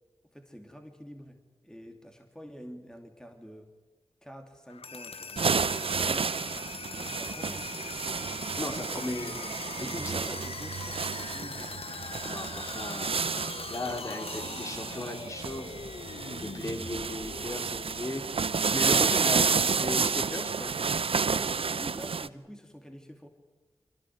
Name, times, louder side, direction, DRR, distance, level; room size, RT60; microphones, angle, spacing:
voice 1, 0.3-1.4 1.6-3.7 4.2-5.4 6.9-7.7 8.7-9.0 9.8-11.8 21.3-23.3, equal, 5° left, 4 dB, 2.7 m, -47 dB
sound 1, 4.7-18.5, left 5 dB, 75° left, 1.1 m, -42 dB
sound 2, 5.4-22.3, right 5 dB, 70° right, 0.7 m, -30 dB
voice 2, 8.6-10.1 12.2-13.2 13.7-15.8 16.3-18.2 18.7-20.7, left 1 dB, 30° left, 4 dB, 3.5 m, -37 dB
24.0 x 17.5 x 9.6 m, 1.2 s
cardioid pair, 45°, 10 cm